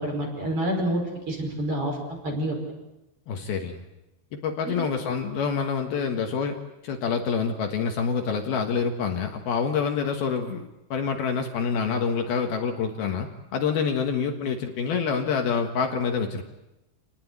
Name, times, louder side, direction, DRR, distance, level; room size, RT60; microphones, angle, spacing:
voice 1, 0.0-2.6 4.7-4.8, right 1 dB, 30° right, 2 dB, 5.8 m, -28 dB
voice 2, 3.3-3.8 4.4-6.6 6.8-16.4, left 6 dB, 65° left, 4 dB, 3.2 m, -27 dB
28.0 x 19.0 x 9.5 m, 0.95 s
omnidirectional pair, 5.1 m